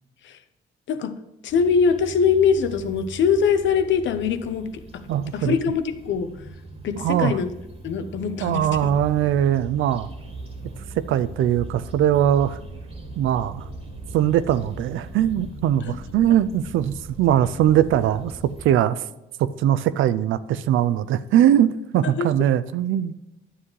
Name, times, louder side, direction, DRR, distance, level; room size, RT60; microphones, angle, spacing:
voice 1, 0.9-1.2 1.4-4.8 5.3-6.3 6.8-7.5 7.8-8.7 15.9-16.0 22.0-22.3, left 6 dB, 70° left, 9 dB, 1.0 m, -22 dB
sound 1, 1.5-18.7, right 1 dB, 30° right, 2.1 m, -41 dB
voice 2, 5.1-5.6 7.0-7.4 8.4-10.1 11.0-12.6 13.2-13.6 14.1-19.0 19.4-23.1, right 11 dB, 80° right, 15 dB, 0.5 m, -21 dB
sound 2, 8.6-15.5, right 3 dB, 50° right, 1.9 m, -40 dB
11.0 x 7.4 x 3.2 m, 1.0 s
cardioid pair, 90°, 20 cm